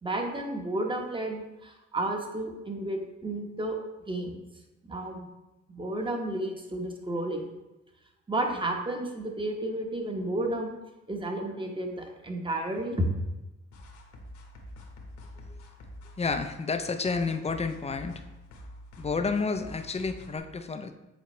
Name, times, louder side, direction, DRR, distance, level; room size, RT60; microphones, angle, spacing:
voice 1, 0.0-3.8 4.1-4.4 4.8-5.3 5.7-7.5 8.3-10.7 11.1-13.1, right 1 dB, 15° right, 2 dB, 1.0 m, -32 dB
sound 1, 13.7-20.4, left 1 dB, 70° left, 1.3 m, -47 dB
voice 2, 16.2-18.1 19.0-20.9, left 4 dB, 20° left, 8 dB, 0.5 m, -30 dB
8.1 x 4.1 x 3.1 m, 1.0 s
cardioid pair, 90°, 30 cm